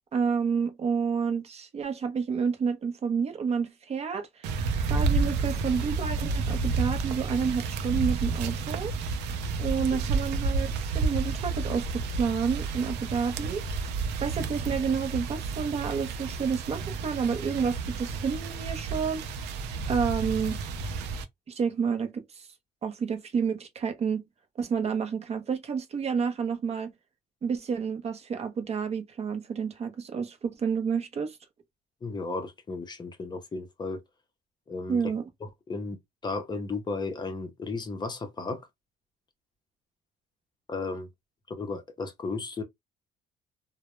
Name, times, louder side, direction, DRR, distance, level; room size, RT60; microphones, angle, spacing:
voice 1, 0.1-4.6 4.9-8.9 9.6-13.6 14.2-19.3 19.9-20.6 21.5-22.5 22.8-24.2 24.6-26.9 27.4-31.4 34.9-35.2, right 6 dB, 40° right, 0.6 m, -29 dB
sound 1, 4.4-21.2, right 4 dB, 85° right, 0.5 m, -30 dB
voice 2, 32.0-34.0 34.7-35.0 35.4-36.0 36.2-38.7 40.7-41.1 41.5-42.6, left 3 dB, 25° left, 0.5 m, -34 dB
2.1 x 2.0 x 2.9 m
cardioid pair, 110°, 17 cm